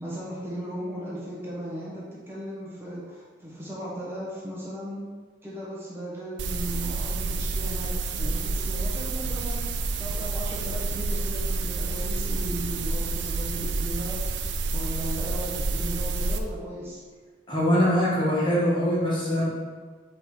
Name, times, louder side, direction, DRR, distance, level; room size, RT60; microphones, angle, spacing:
voice 1, 0.0-5.0 5.4-14.4 14.7-17.0, equal, 15° right, -7 dB, 1.3 m, -36 dB
sound 1, 6.4-16.4, right 3 dB, 70° right, 0.4 m, -29 dB
voice 2, 17.5-19.4, equal, 25° left, -6 dB, 1.2 m, -23 dB
5.1 x 3.9 x 4.7 m, 1.4 s
head